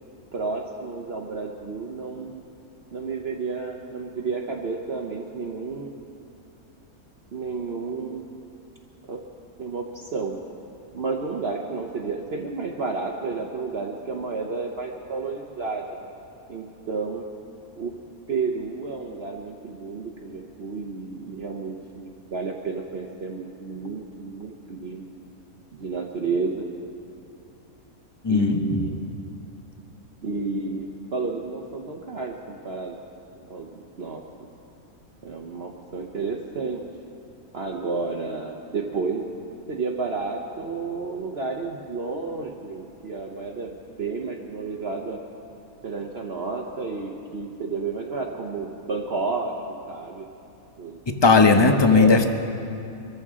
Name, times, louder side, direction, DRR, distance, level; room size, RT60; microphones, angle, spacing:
voice 1, 0.3-2.4 2.9-6.0 7.3-8.2 9.0-9.2 9.6-10.4 10.9-15.8 16.5-17.2 17.8-17.9 18.3-25.1 25.7-26.7 28.3-29.0 30.2-33.0 33.5-34.2 35.2-36.8 37.5-39.4 39.7-45.2 45.8-49.5 49.9-50.2 50.8-51.0 51.3-52.2, right 4 dB, 50° right, 1 dB, 1.0 m, -31 dB
voice 2, 28.2-28.9 51.1-52.3, left 4 dB, 25° left, 6 dB, 0.6 m, -17 dB
23.0 x 14.5 x 3.7 m, 2.7 s
omnidirectional pair, 1.5 m